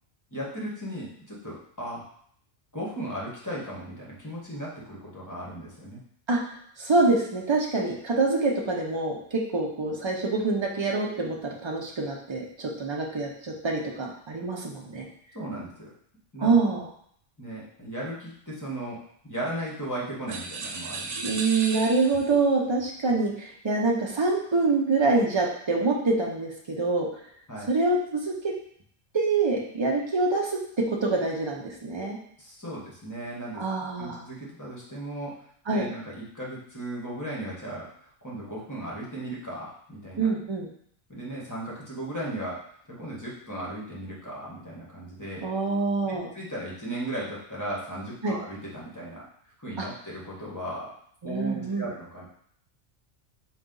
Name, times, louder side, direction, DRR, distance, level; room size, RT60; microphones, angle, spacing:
voice 1, 0.3-2.0 2.7-6.0 15.3-15.9 16.3-16.5 17.4-19.0 19.2-21.3 27.5-27.7 32.4-33.6 34.0-35.3 35.7-37.9 38.2-40.3 41.1-42.6 43.0-45.5 46.1-49.2 49.6-50.9 51.2-52.3, right 1 dB, 15° left, -6 dB, 1.0 m, -36 dB
voice 2, 6.8-15.1 16.4-16.9 21.2-27.1 27.7-28.5 29.1-30.6 30.9-32.2 33.6-34.2 35.7-35.9 40.2-40.7 45.4-46.3 48.2-48.4 49.8-49.9 51.2-51.9, right 3 dB, 35° right, -1 dB, 0.5 m, -26 dB
sound 1, 20.3-22.4, right 4 dB, 85° right, 0.9 m, -35 dB
4.0 x 2.4 x 3.8 m, 0.65 s
omnidirectional pair, 1.2 m